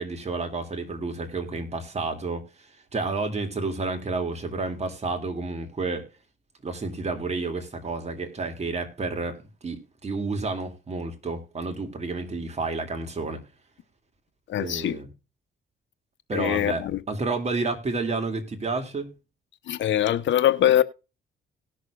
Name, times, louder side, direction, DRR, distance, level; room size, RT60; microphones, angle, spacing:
voice 1, 0.0-6.1 6.6-9.4 9.6-13.4 14.6-15.1 16.3-19.1, right 3 dB, 35° right, 2.5 m, -30 dB
voice 2, 14.5-15.0 16.3-17.0 19.7-20.8, left 11 dB, 70° left, 0.8 m, -22 dB
18.5 x 6.6 x 2.4 m
cardioid pair, 90°, 20 cm